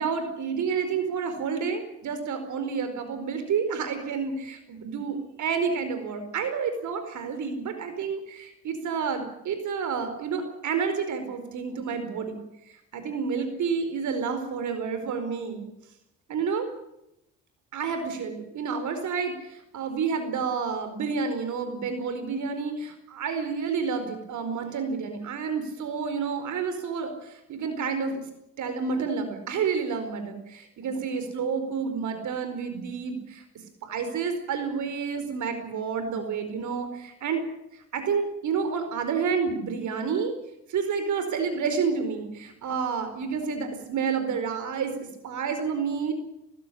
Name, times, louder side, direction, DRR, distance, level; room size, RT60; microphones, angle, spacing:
voice 1, 0.0-12.4 12.9-15.7 16.3-16.7 17.7-28.2 28.6-33.4 33.8-37.4 37.7-40.3 40.7-46.1, right 5 dB, 75° right, 8 dB, 4.7 m, -29 dB
20.0 x 15.5 x 9.9 m, 0.82 s
cardioid pair, 90°, 30 cm